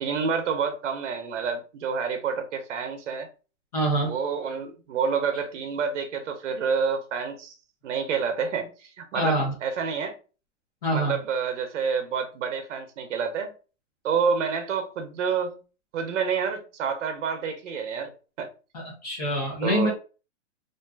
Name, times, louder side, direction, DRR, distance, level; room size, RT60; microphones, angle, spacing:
voice 1, 0.0-3.3 4.0-7.5 7.8-9.4 9.6-10.2 10.9-13.5 14.0-15.6 15.9-18.5 19.6-19.9, right 6 dB, 75° right, 0.6 m, -28 dB
voice 2, 3.7-4.1 9.1-9.5 10.8-11.2 18.7-19.9, right 1 dB, 35° left, 0.6 m, -25 dB
2.5 x 2.2 x 2.3 m
hypercardioid pair, 170°, 36 cm